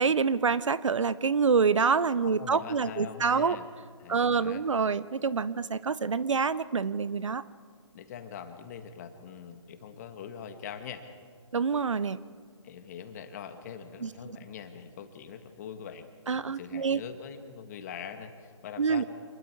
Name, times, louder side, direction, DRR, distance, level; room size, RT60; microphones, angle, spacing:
voice 1, 0.0-3.6 4.1-7.4 11.5-12.2 14.0-14.1 16.3-17.0 18.8-19.0, right 5 dB, 75° right, 17 dB, 0.8 m, -26 dB
voice 2, 2.2-3.7 4.0-4.6 7.9-11.0 12.6-19.0, left 7 dB, 35° left, 8 dB, 1.7 m, -43 dB
27.0 x 21.0 x 4.7 m, 2.1 s
figure-of-eight pair, 150°, 16 cm